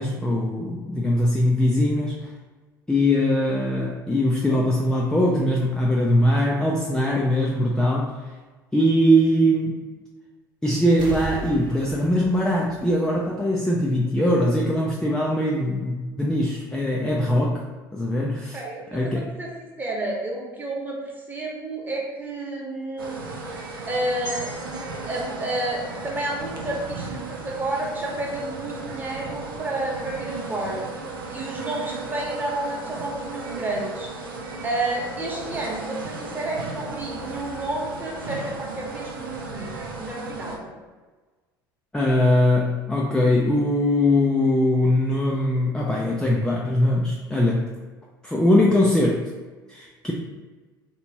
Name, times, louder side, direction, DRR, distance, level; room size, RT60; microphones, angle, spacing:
voice 1, 0.0-2.3 2.9-8.2 8.7-9.8 10.6-17.6 17.9-18.6 18.9-19.3 41.9-47.7 48.2-49.3 49.7-50.1, left 1 dB, 5° left, -3 dB, 0.4 m, -21 dB
sound 1, 11.0-13.6 13.9-14.0, right 3 dB, 40° right, 0.8 m, -36 dB
voice 2, 18.5-21.0 21.3-23.2 23.9-24.5 25.0-30.9 31.3-34.1 34.6-40.7, right 2 dB, 15° right, -2 dB, 1.0 m, -30 dB
sound 2, 23.0-40.6, right 3 dB, 80° right, 0.5 m, -35 dB
sound 3, 24.2-28.7 29.1-29.3, right 2 dB, 85° left, 1.3 m, -44 dB
3.4 x 2.9 x 2.8 m, 1.3 s
figure-of-eight pair, 65°, 12 cm